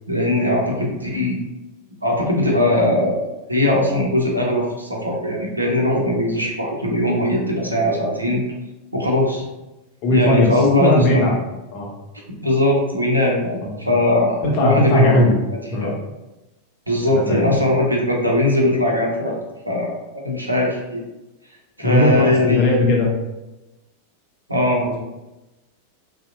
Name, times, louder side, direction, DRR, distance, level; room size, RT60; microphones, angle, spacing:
voice 1, 0.1-1.4 2.0-3.2 3.5-8.4 8.9-9.4 10.1-11.3 12.4-15.4 15.6-15.9 16.9-19.3 19.7-21.0 21.8-22.8 24.5-24.8, left 1 dB, 85° right, -1 dB, 0.5 m, -20 dB
voice 2, 10.0-10.5 10.8-11.4 11.7-11.9 13.6-13.7 14.4-15.4 15.7-15.9 17.1-17.4 21.8-23.1 24.9-25.0, left 1 dB, 45° left, -1 dB, 0.6 m, -18 dB
2.7 x 2.0 x 2.5 m, 1.0 s
figure-of-eight pair, 90°, 0 cm